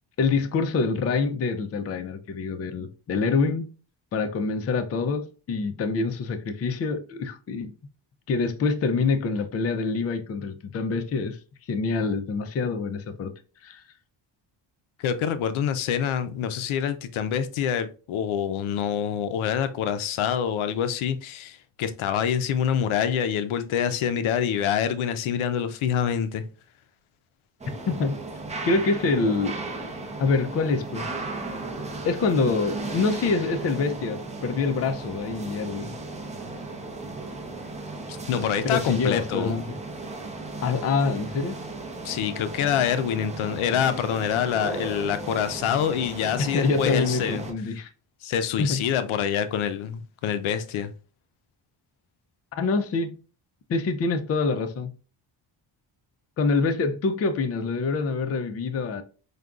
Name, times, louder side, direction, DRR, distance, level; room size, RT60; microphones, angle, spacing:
voice 1, 0.2-3.7 4.1-7.7 8.3-11.4 11.7-13.3 13.6-13.8 27.9-28.2 28.7-29.6 30.2-31.1 32.0-35.9 38.6-39.8 40.6-41.6 46.5-47.9 48.6-48.8 52.5-53.2 53.7-54.9 56.4-59.0, left 4 dB, 35° left, 0.4 m, -26 dB
voice 2, 15.0-26.5 38.3-39.6 42.0-47.4 48.2-50.9, left 8 dB, 80° left, 0.6 m, -26 dB
sound 1, 27.6-47.5, right 3 dB, 15° right, 0.5 m, -35 dB
4.9 x 2.3 x 2.3 m
cardioid pair, 110°, 48 cm